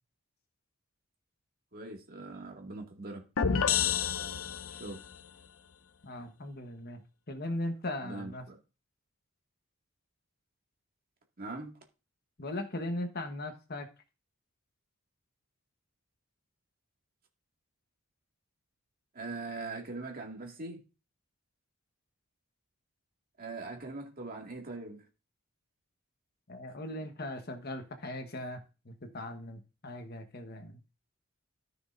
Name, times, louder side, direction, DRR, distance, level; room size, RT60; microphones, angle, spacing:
voice 1, 1.7-3.5 4.7-5.0 8.0-8.6 11.4-11.7 19.1-20.8 23.4-25.0, right 3 dB, 45° right, 2.1 m, -41 dB
sound 1, 3.4-5.1, left 7 dB, 85° left, 0.7 m, -29 dB
voice 2, 6.0-7.0 7.3-8.4 12.4-13.9 26.5-30.8, left 1 dB, 50° left, 1.2 m, -39 dB
14.0 x 6.1 x 2.6 m
head